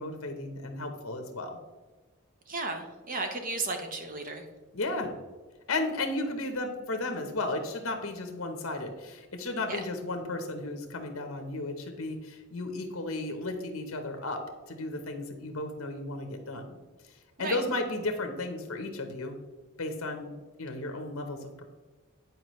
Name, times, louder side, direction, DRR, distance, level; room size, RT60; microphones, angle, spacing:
voice 1, 0.0-1.6 4.7-5.1 5.7-14.4 14.7-16.8 17.4-19.4 19.8-21.6, left 2 dB, 70° left, 5 dB, 0.9 m, -34 dB
voice 2, 2.5-4.4 9.7-9.8 17.4-17.6, right 3 dB, 40° right, 5 dB, 0.8 m, -34 dB
9.4 x 4.6 x 3.1 m, 1.3 s
head